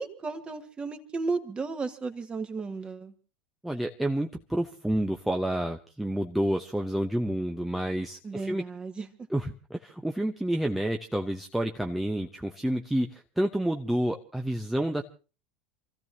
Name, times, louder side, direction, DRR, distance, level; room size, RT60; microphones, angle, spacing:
voice 1, 0.0-3.1 8.2-9.1, right 4 dB, 20° right, 8 dB, 1.8 m, -34 dB
voice 2, 3.6-8.6 9.3-15.0, right 1 dB, 5° right, 4 dB, 0.9 m, -29 dB
28.5 x 15.0 x 2.8 m, 0.35 s
figure-of-eight pair, 80°, 5 cm